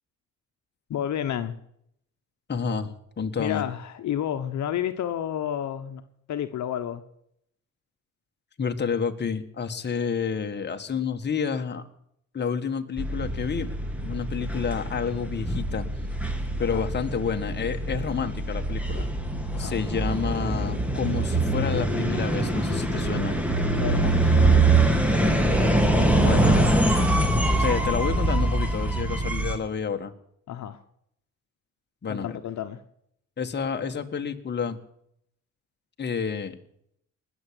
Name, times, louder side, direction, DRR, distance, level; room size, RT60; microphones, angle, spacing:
voice 1, 0.9-1.5 3.4-6.0 6.3-7.0 16.6-16.8 19.5-19.8 23.7-24.8 25.9-26.9 30.5-30.8 32.1-32.8, left 10 dB, 70° left, 8 dB, 1.2 m, -31 dB
voice 2, 2.5-2.9 3.2-3.7 8.6-11.9 12.3-13.7 14.0-15.9 16.6-19.1 19.6-23.4 26.2-26.5 27.6-30.1 32.0-32.4 33.4-34.8 36.0-36.5, left 6 dB, 35° left, 5 dB, 1.7 m, -29 dB
sound 1, 13.0-29.5, right 2 dB, 5° right, 2.6 m, -24 dB
19.5 x 7.3 x 9.9 m, 0.72 s
cardioid pair, 90°, 30 cm